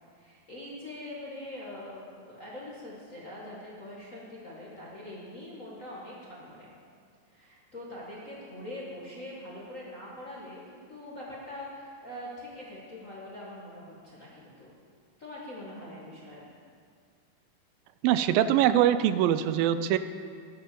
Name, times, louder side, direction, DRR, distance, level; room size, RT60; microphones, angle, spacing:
voice 1, 0.1-6.7 7.3-14.7 15.2-16.5, left 1 dB, 55° left, -6 dB, 0.8 m, -43 dB
voice 2, 18.0-20.0, right 11 dB, 80° right, 12 dB, 2.2 m, -23 dB
10.5 x 10.0 x 6.9 m, 2.3 s
omnidirectional pair, 4.2 m